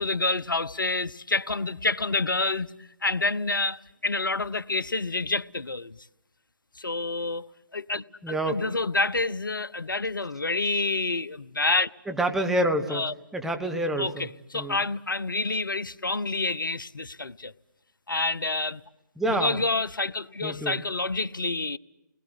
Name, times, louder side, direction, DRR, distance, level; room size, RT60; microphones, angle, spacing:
voice 1, 0.0-2.7 3.0-6.0 6.8-11.9 12.9-13.1 14.0-17.5 18.1-18.8 19.3-21.8, left 3 dB, 85° left, 0.9 m, -28 dB
voice 2, 8.2-8.6 12.1-14.3 14.5-14.8 19.2-19.6 20.4-20.8, right 1 dB, 5° right, 1.5 m, -27 dB
29.5 x 21.0 x 8.2 m
figure-of-eight pair, 145°, 11 cm